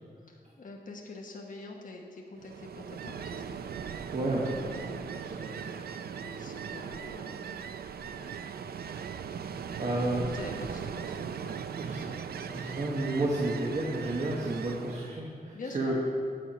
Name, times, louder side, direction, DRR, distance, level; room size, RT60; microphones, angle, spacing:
voice 1, 0.3-3.4 6.2-7.7 8.0-8.4 10.1-11.6 15.5-16.0, left 2 dB, 55° left, 0 dB, 1.0 m, -45 dB
Ocean, 2.4-15.2, right 7 dB, 75° right, 0.4 m, -39 dB
voice 2, 4.1-5.7 9.8-10.3 11.8-16.0, right 2 dB, 45° right, -3 dB, 1.1 m, -32 dB
8.9 x 7.2 x 5.1 m, 2.1 s
wide cardioid pair, 130°, 16 cm